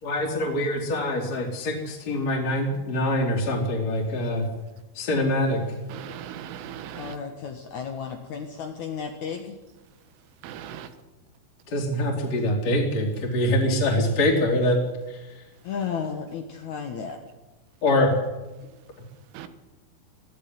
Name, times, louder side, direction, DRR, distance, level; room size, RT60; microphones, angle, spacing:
voice 1, 0.0-4.5 4.9-5.6 11.7-14.8 15.1-15.4 17.8-18.1, left 1 dB, 35° left, -3 dB, 3.7 m, -24 dB
voice 2, 5.9-7.2 10.4-10.9 19.3-19.5, right 10 dB, 80° right, 11 dB, 3.9 m, -38 dB
voice 3, 6.9-9.6 15.6-17.2, left 6 dB, 75° left, 4 dB, 1.7 m, -33 dB
20.5 x 14.0 x 9.6 m, 1.1 s
omnidirectional pair, 5.7 m